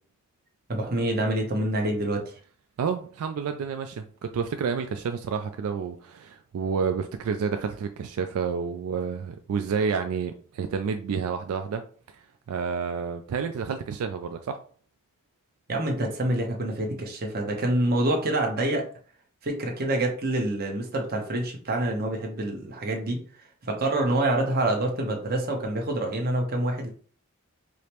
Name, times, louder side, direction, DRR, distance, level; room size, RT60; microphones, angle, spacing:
voice 1, 0.7-2.2 15.7-18.8 19.4-23.2 23.6-26.9, right 1 dB, 45° right, 0.8 m, -26 dB
voice 2, 2.8-11.8 12.1-14.6, right 6 dB, 80° right, 0.3 m, -30 dB
4.9 x 2.0 x 2.9 m
head